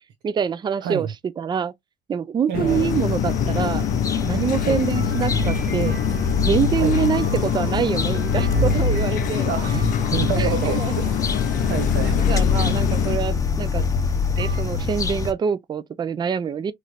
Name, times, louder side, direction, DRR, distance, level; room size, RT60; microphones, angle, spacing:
voice 1, 0.2-1.1 1.4-1.7 2.1-3.9 4.2-6.0 6.4-9.5 10.3-10.9 12.2-13.8 14.4-16.7, right 7 dB, 25° right, 0.4 m, -25 dB
sound 1, 2.5-13.2, left 10 dB, 55° left, 0.4 m, -25 dB
voice 2, 2.5-2.9 4.6-4.8 6.8-6.9 9.4-9.8 10.1-11.2 11.6-12.2, right 8 dB, 75° right, 0.6 m, -28 dB
sound 2, 2.7-15.3, left 4 dB, 20° left, 0.7 m, -24 dB
sound 3, 4.9-12.4 13.8-13.9 14.3-14.6, right 3 dB, 60° right, 1.3 m, -43 dB
3.1 x 3.0 x 2.4 m
cardioid pair, 110°, 17 cm